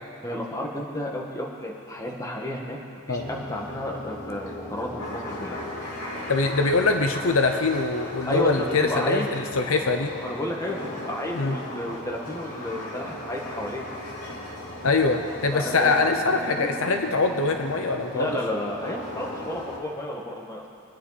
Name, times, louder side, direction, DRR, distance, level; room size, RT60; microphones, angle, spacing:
voice 1, 0.2-2.8 3.1-5.6 8.3-9.3 10.2-10.8 11.1-13.8 15.5-16.7 18.1-20.6, left 1 dB, 15° left, -2 dB, 1.6 m, -32 dB
sound 1, 3.2-19.8, left 1 dB, 85° left, 2.8 m, -37 dB
voice 2, 6.3-10.1 11.3-11.6 14.8-18.3, left 3 dB, 70° left, 5 dB, 0.8 m, -23 dB
24.5 x 9.8 x 4.2 m, 2.5 s
head